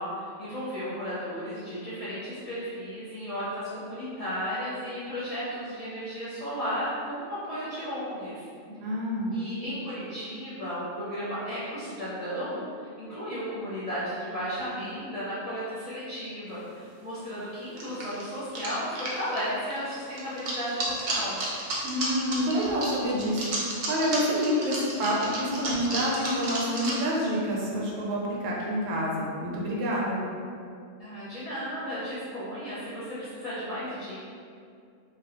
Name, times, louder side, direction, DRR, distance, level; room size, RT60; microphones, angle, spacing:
voice 1, 0.0-8.5 9.3-21.4 31.0-34.2, equal, 40° left, -12 dB, 0.6 m, -34 dB
voice 2, 8.8-9.4 21.8-30.2, equal, 80° right, -4 dB, 0.9 m, -28 dB
sound 1, 16.6-16.7 17.8-27.0, right 1 dB, 60° right, 0.5 m, -33 dB
2.3 x 2.1 x 2.9 m, 2.4 s
omnidirectional pair, 1.3 m